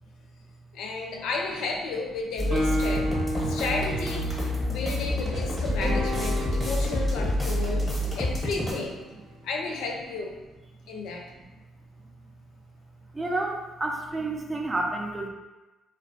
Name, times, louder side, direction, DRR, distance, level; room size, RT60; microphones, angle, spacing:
voice 1, 0.7-3.1 3.5-9.0 9.4-10.3 10.9-11.2, left 3 dB, 75° left, 1 dB, 0.4 m, -33 dB
sound 1, 2.4-8.7, left 1 dB, 5° left, 0.8 m, -28 dB
Guitar, 2.5-6.2, equal, 60° right, 0.9 m, -32 dB
sound 2, 5.7-9.8, left 1 dB, 85° right, 1.1 m, -37 dB
voice 2, 13.1-15.3, right 2 dB, 25° right, 2 dB, 0.4 m, -30 dB
2.3 x 2.0 x 2.6 m, 1.1 s
supercardioid pair, 65°, 0 cm